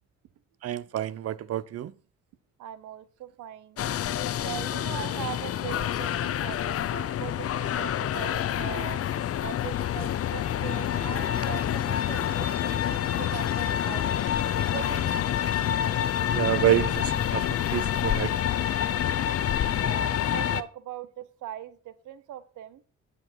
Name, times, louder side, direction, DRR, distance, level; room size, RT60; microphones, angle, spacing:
voice 1, 0.6-1.9 16.3-18.3, right 12 dB, 55° right, 0.6 m, -28 dB
voice 2, 2.6-3.8 4.4-9.0 9.4-14.2 14.7-15.4 19.7-22.8, right 11 dB, 80° right, 1.0 m, -40 dB
sound 1, 3.8-20.6, left 10 dB, 50° left, 0.6 m, -27 dB
10.5 x 7.1 x 4.5 m
cardioid pair, 90°, 30 cm